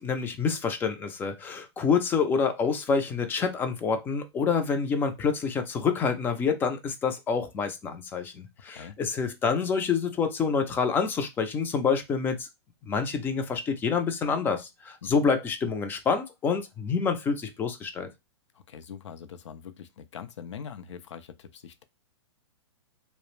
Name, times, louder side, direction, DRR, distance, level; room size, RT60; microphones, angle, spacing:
voice 1, 0.0-12.5 12.9-18.1, left 5 dB, 15° left, 0.3 m, -27 dB
voice 2, 8.7-9.0 15.0-15.1 18.5-21.8, left 7 dB, 80° left, 0.5 m, -43 dB
2.4 x 2.0 x 3.0 m
hypercardioid pair, 135°, 15 cm